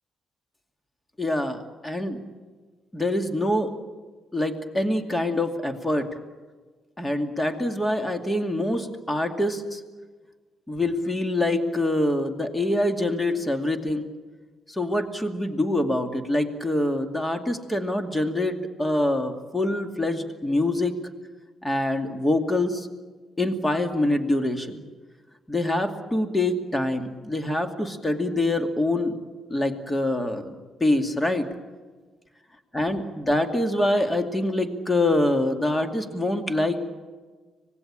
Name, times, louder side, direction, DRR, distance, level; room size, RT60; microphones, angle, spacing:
voice 1, 1.2-2.2 2.9-3.7 4.3-6.1 7.0-9.8 10.7-14.1 14.7-21.0 21.6-22.9 23.4-24.8 25.5-29.2 29.5-30.5 30.8-31.5 32.7-36.8, left 1 dB, 15° left, 6 dB, 2.4 m, -25 dB
25.5 x 19.5 x 8.8 m, 1.4 s
cardioid pair, 90°, 0 cm